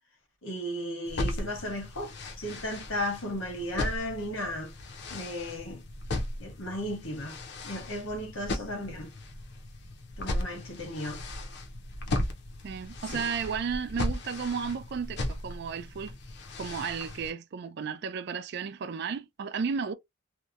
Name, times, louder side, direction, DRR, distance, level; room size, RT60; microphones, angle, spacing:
voice 1, 0.4-4.7 5.1-5.8 6.4-7.4 7.6-9.1 10.2-11.2 13.1-13.3, left 1 dB, 85° left, 1.1 m, -35 dB
sound 1, 1.1-17.3, left 1 dB, 55° left, 0.6 m, -37 dB
voice 2, 12.6-16.2 16.6-19.9, right 6 dB, 55° right, 0.3 m, -33 dB
2.8 x 2.1 x 2.4 m
head